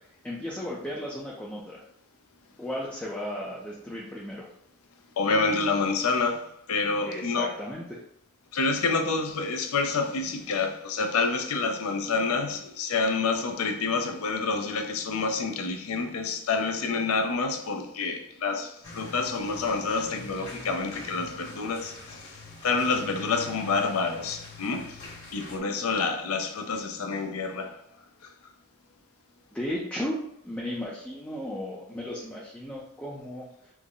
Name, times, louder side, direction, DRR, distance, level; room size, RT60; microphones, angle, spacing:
voice 1, 0.0-1.8 2.6-4.5 7.0-8.0 29.5-30.2 30.4-33.7, left 1 dB, 5° left, 0.4 m, -35 dB
voice 2, 5.2-7.5 8.5-22.3 22.6-25.1 25.3-27.8 28.2-28.3, left 4 dB, 70° left, 0.5 m, -28 dB
sound 1, 18.8-25.6, left 3 dB, 55° left, 1.1 m, -44 dB
3.5 x 2.0 x 3.7 m
head